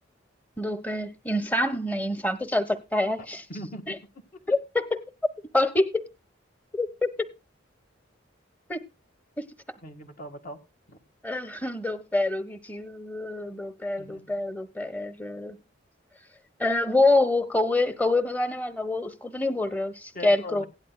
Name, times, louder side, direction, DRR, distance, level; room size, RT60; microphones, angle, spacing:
voice 1, 0.6-3.4 3.9-4.0 4.5-5.0 5.5-6.1 6.8-7.3 8.7-8.8 9.4-9.5 11.2-15.6 16.6-20.7, left 2 dB, 10° left, 1.2 m, -26 dB
voice 2, 3.2-4.0 9.8-10.6 10.9-11.0 14.0-14.3 20.1-20.7, left 1 dB, 40° left, 1.7 m, -40 dB
17.0 x 11.0 x 2.3 m
head